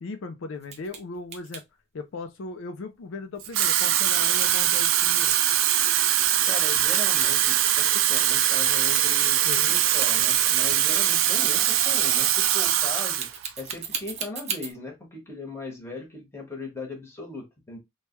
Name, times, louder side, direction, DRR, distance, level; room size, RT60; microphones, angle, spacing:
voice 1, 0.0-1.6 1.9-5.3 9.4-9.6, left 3 dB, 70° left, 0.4 m, -37 dB
sound 1, 0.6-1.0 1.3-1.6 3.6-5.9 6.3-14.7, right 6 dB, 35° right, 0.6 m, -35 dB
Water tap faucet / Fill (with liquid), 3.4-13.3 13.7-14.0, right 11 dB, 90° right, 0.4 m, -22 dB
voice 2, 6.4-13.3 13.6-17.8, left 3 dB, 15° left, 1.2 m, -38 dB
3.1 x 2.2 x 2.9 m
head